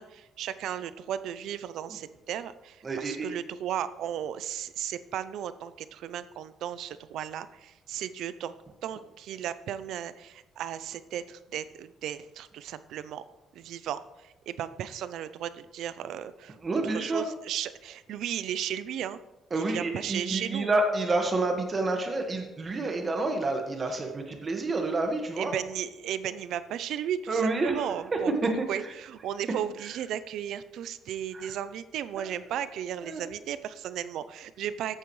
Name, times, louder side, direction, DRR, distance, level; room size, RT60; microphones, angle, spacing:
voice 1, 0.0-8.5 8.8-13.2 13.5-16.6 16.8-19.2 19.5-20.7 25.4-28.3 28.7-35.0, right 10 dB, 80° right, 14 dB, 0.5 m, -35 dB
voice 2, 2.8-3.3 16.6-17.2 19.5-25.5 27.3-27.9 28.4-28.7 31.3-31.5 33.1-33.2, right 2 dB, 30° right, 3 dB, 1.6 m, -28 dB
14.0 x 8.9 x 3.2 m, 1.0 s
cardioid pair, 140°, 0 cm